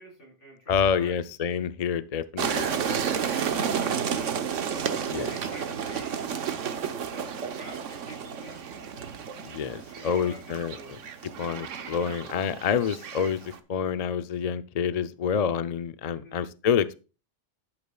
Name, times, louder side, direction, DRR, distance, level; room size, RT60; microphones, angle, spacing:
voice 1, 0.0-1.2 2.8-4.3 5.3-6.2 6.9-8.6 9.9-10.4 10.7-11.0 16.1-16.4, equal, 75° left, -1 dB, 5.4 m, -47 dB
voice 2, 0.7-2.7 5.1-5.3 9.4-11.0 11.4-17.0, left 7 dB, 45° left, 14 dB, 0.5 m, -28 dB
sound 1, 2.4-13.6, right 7 dB, 85° right, 1.3 m, -32 dB
11.5 x 8.5 x 2.3 m, 0.32 s
omnidirectional pair, 1.2 m